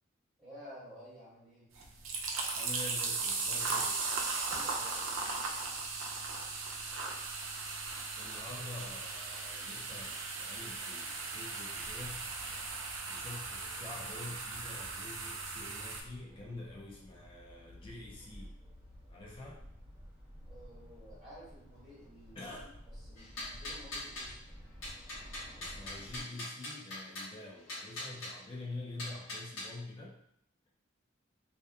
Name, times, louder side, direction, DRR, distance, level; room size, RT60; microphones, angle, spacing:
voice 1, 0.4-1.7 4.5-5.3 20.5-22.7 23.1-24.3, equal, 5° right, -13 dB, 1.2 m, -53 dB
sound 1, 1.7-16.0, right 4 dB, 90° right, 0.4 m, -37 dB
voice 2, 2.5-4.1 8.2-12.3 13.1-18.5 19.1-19.6 22.4-22.7 25.5-30.2, left 2 dB, 25° left, -4 dB, 0.4 m, -47 dB
sound 2, 12.0-26.2, equal, 25° right, 0.9 m, -53 dB
sound 3, 23.2-24.3 24.8-27.3 27.7-28.3 29.0-29.7, left 1 dB, 80° left, 1.1 m, -42 dB
2.8 x 2.2 x 2.3 m, 0.74 s
head